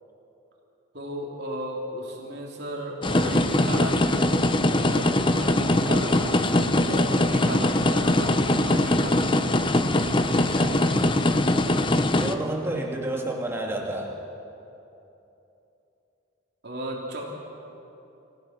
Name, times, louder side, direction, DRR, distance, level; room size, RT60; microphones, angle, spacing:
voice 1, 0.9-9.4 16.6-17.2, right 1 dB, 55° right, -2 dB, 3.4 m, -35 dB
sound 1, 3.0-12.3, left 1 dB, 25° left, 0.7 m, -22 dB
voice 2, 10.3-11.1 12.2-14.1, right 1 dB, 10° right, -1 dB, 2.3 m, -31 dB
28.5 x 16.0 x 6.1 m, 2.9 s
head